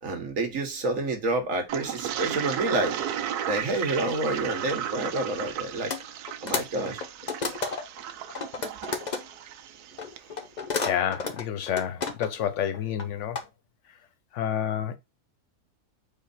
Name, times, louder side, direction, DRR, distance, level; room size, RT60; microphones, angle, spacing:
voice 1, 0.0-3.0 3.5-5.9 6.4-7.0, right 2 dB, 55° right, 1.6 m, -28 dB
Toilet flush, 1.7-10.3, right 10 dB, 80° right, 1.1 m, -35 dB
sound 1, 5.9-6.0 6.3-8.0 8.3-9.2 10.0-12.5 12.7-13.4, left 4 dB, 40° left, 0.6 m, -31 dB
voice 2, 10.8-13.4 14.3-15.0, left 9 dB, 60° left, 0.9 m, -29 dB
4.5 x 2.8 x 4.0 m
omnidirectional pair, 1.7 m